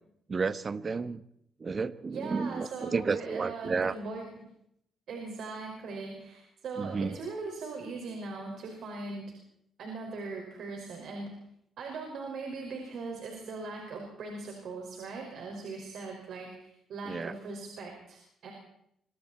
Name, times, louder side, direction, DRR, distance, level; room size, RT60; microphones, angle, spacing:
voice 1, 0.3-1.2 1.6-3.9 6.8-7.2 17.1-17.3, right 4 dB, 35° right, 15 dB, 1.1 m, -31 dB
voice 2, 2.1-4.3 5.1-9.3 9.8-11.3 11.8-18.5, right 3 dB, 70° right, 1 dB, 5.6 m, -40 dB
26.0 x 25.0 x 4.4 m, 0.73 s
cardioid pair, 90°, 0 cm